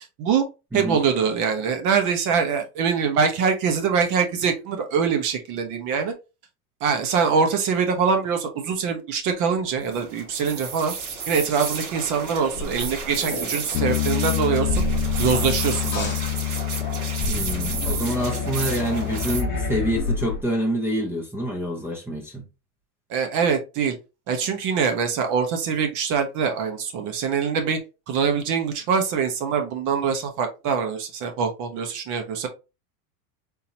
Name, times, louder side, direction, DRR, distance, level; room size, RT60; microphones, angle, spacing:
voice 1, 0.7-6.1 6.8-10.9 11.3-14.8 15.2-16.2 23.1-24.0 24.3-27.8 28.1-32.5, right 6 dB, 45° right, 1.0 m, -23 dB
sound 1, 9.8-19.4, right 5 dB, 90° right, 2.1 m, -33 dB
sound 2, 10.0-20.4, left 1 dB, 25° left, 1.1 m, -32 dB
Bass guitar, 13.7-20.0, left 14 dB, 65° left, 0.5 m, -27 dB
voice 2, 17.3-22.5, equal, 5° right, 0.5 m, -27 dB
3.8 x 2.8 x 2.8 m
supercardioid pair, 145°, 43 cm